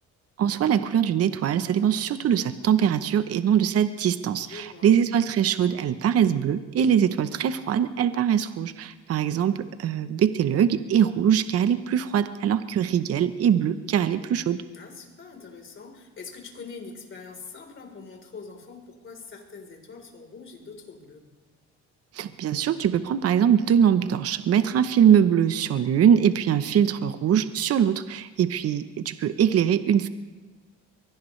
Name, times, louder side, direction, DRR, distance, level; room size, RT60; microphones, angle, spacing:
voice 1, 0.4-14.6 22.1-30.1, right 9 dB, 50° right, 12 dB, 0.9 m, -22 dB
voice 2, 4.3-5.0 14.7-21.2, left 4 dB, 40° left, 2 dB, 4.0 m, -43 dB
23.0 x 17.0 x 3.3 m, 1.3 s
cardioid pair, 95°, 31 cm